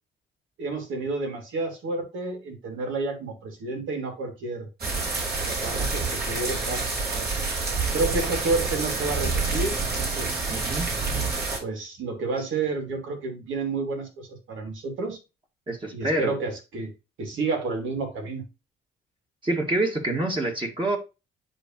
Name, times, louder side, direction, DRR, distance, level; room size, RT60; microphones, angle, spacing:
voice 1, 0.6-4.7 5.5-7.3 7.9-10.5 11.6-15.2 15.9-16.9 17.2-18.4, right 3 dB, 80° right, 2.7 m, -30 dB
sound 1, 4.8-11.6, right 4 dB, 55° right, 3.7 m, -27 dB
voice 2, 10.5-10.9 15.7-16.4 19.4-21.0, right 2 dB, 25° right, 2.0 m, -26 dB
10.0 x 3.6 x 3.0 m
cardioid pair, 90°, 20 cm